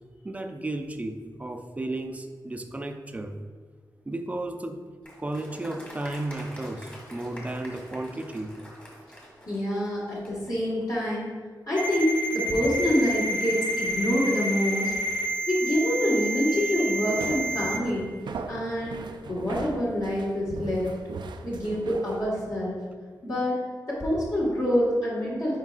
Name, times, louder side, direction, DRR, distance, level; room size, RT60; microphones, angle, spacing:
voice 1, 0.2-3.4 4.1-4.8 5.2-8.5 16.5-16.7, right 2 dB, 20° right, 6 dB, 0.4 m, -34 dB
Applause, 5.0-10.6, equal, 20° left, 1.6 m, -46 dB
voice 2, 9.5-11.3 11.7-14.9 15.5-18.1 18.5-19.0 19.3-20.9 21.4-22.7 23.2-23.6 23.9-25.6, equal, 50° left, -7 dB, 1.7 m, -26 dB
Ringtone, 11.8-17.8, equal, 90° left, 1.7 m, -29 dB
sound 1, 17.1-22.3, right 4 dB, 80° right, 0.4 m, -39 dB
9.4 x 4.5 x 2.5 m, 1.5 s
wide cardioid pair, 120°, 8 cm